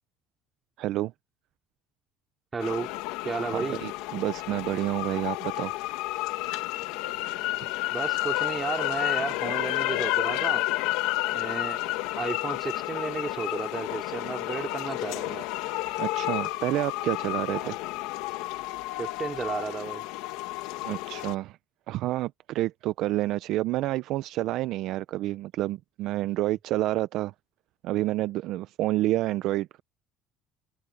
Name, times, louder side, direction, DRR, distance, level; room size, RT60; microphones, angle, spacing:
voice 1, 0.8-1.1 3.5-5.7 16.0-17.8 20.8-21.6 21.9-27.3 27.8-29.8, right 16 dB, 50° right, 0.4 m, -29 dB
voice 2, 2.5-2.9 3.2-3.8 7.9-10.7 11.3-11.9 12.2-15.5 17.5-17.8 19.0-20.1, right 5 dB, 20° right, 3.2 m, -33 dB
sound 1, 2.6-21.3, left 18 dB, 85° left, 1.9 m, -31 dB
cardioid pair, 175°, 0 cm